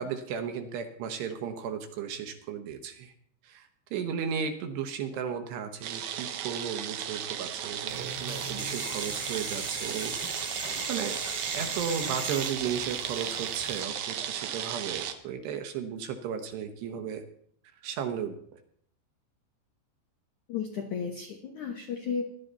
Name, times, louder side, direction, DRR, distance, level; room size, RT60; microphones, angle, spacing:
voice 1, 0.0-3.1 3.4-10.5 10.9-11.2 11.5-17.2 17.8-18.4, right 7 dB, 75° right, 6 dB, 2.7 m, -35 dB
sound 1, 5.8-15.1, right 10 dB, 90° right, 2.0 m, -35 dB
sound 2, 7.9-13.8, right 2 dB, 25° right, 1.4 m, -38 dB
voice 2, 20.5-22.3, left 6 dB, 85° left, 2 dB, 1.7 m, -33 dB
16.5 x 12.0 x 4.0 m, 0.63 s
omnidirectional pair, 5.5 m